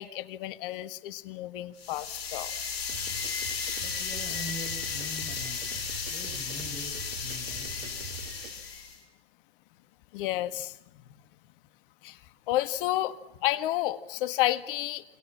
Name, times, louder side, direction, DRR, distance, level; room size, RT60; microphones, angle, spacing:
voice 1, 0.0-2.5 10.1-10.8 12.0-12.2 12.5-15.0, left 15 dB, 60° left, 13 dB, 1.8 m, -31 dB
sound 1, 1.8-9.0, left 6 dB, 80° left, 6.6 m, -34 dB
sound 2, 2.9-8.5, right 7 dB, 70° right, 3.6 m, -44 dB
voice 2, 3.8-8.2, left 1 dB, 25° left, 2 dB, 6.7 m, -44 dB
29.0 x 24.5 x 7.5 m, 0.90 s
hypercardioid pair, 100°, 31 cm